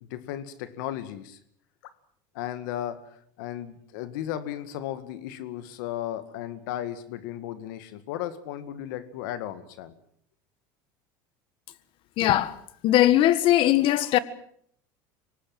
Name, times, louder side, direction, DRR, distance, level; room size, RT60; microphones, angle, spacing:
voice 1, 0.0-1.4 2.3-9.9, left 12 dB, 80° left, 1.9 m, -35 dB
voice 2, 12.2-12.5 12.8-14.2, left 13 dB, 60° left, 1.6 m, -20 dB
25.0 x 18.5 x 7.7 m
supercardioid pair, 100°, 10 cm